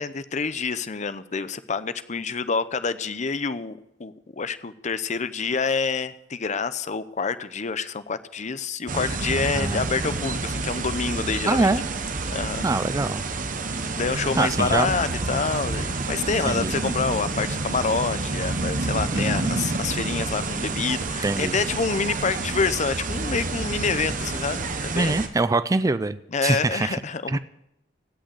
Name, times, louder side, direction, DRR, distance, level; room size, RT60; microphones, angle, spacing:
voice 1, 0.0-11.7 12.3-12.6 14.0-25.2 26.3-27.4, left 5 dB, 40° left, 13 dB, 0.7 m, -27 dB
sound 1, 8.9-25.3, right 3 dB, 50° right, 1.1 m, -29 dB
voice 2, 9.5-9.9 11.5-11.8 12.6-13.2 14.4-14.9 16.5-16.7 19.1-19.7 21.2-21.6 24.9-27.0 27.3-27.4, right 3 dB, 20° right, 14 dB, 0.4 m, -24 dB
16.5 x 6.4 x 7.9 m, 0.81 s
head